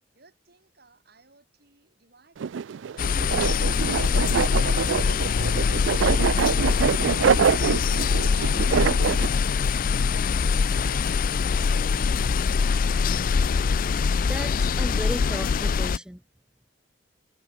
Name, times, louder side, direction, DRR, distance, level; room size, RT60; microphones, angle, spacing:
voice 1, 0.1-3.6 10.7-12.7, right 3 dB, 60° right, 7.1 m, -59 dB
sound 1, 2.4-9.3, right 7 dB, 80° right, 0.4 m, -25 dB
sound 2, 3.0-16.0, left 5 dB, 50° left, 0.4 m, -23 dB
voice 2, 14.2-16.2, equal, 5° right, 0.6 m, -35 dB
head